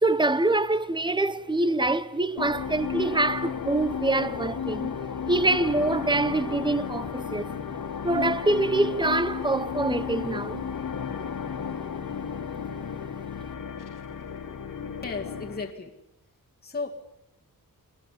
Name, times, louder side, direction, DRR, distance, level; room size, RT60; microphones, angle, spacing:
voice 1, 0.0-4.9 5.3-7.5 8.0-10.7, right 2 dB, 15° right, 0.9 m, -25 dB
sound 1, 2.4-15.7, left 7 dB, 70° left, 2.2 m, -33 dB
voice 2, 15.0-15.9 16.6-17.0, left 4 dB, 30° left, 2.0 m, -34 dB
24.5 x 20.0 x 9.9 m
wide cardioid pair, 175°, 33 cm